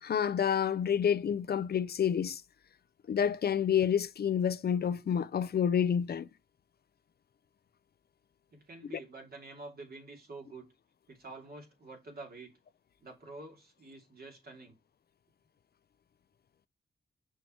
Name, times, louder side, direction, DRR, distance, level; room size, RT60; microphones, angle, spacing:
voice 1, 0.0-2.4 3.1-6.3, left 8 dB, 65° left, 0.5 m, -29 dB
voice 2, 8.5-10.7 11.1-12.5 13.0-14.8, right 3 dB, 60° right, 2.8 m, -48 dB
6.3 x 4.6 x 4.5 m
wide cardioid pair, 85°, 18 cm